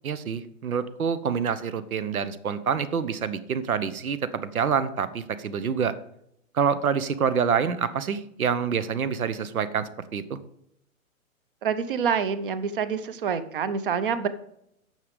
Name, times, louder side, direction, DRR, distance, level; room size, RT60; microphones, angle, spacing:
voice 1, 0.0-6.0 6.5-10.4, right 6 dB, 85° right, 14 dB, 1.1 m, -27 dB
voice 2, 11.6-14.3, right 6 dB, 40° right, 13 dB, 0.8 m, -27 dB
9.4 x 6.7 x 5.3 m, 0.75 s
hypercardioid pair, 155°, 42 cm